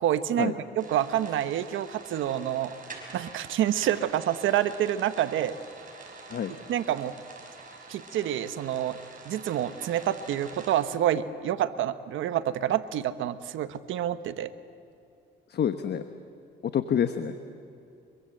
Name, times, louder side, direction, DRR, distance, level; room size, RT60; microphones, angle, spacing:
voice 1, 0.0-2.7 3.1-5.5 6.7-7.1 7.9-9.0 9.3-14.5, right 11 dB, 80° right, 12 dB, 1.0 m, -28 dB
sound 1, 0.8-10.9, right 3 dB, 40° right, 5.9 m, -46 dB
voice 2, 15.5-16.0 16.6-17.4, left 8 dB, 55° left, 9 dB, 1.1 m, -27 dB
25.0 x 23.5 x 7.7 m, 2.7 s
cardioid pair, 90°, 20 cm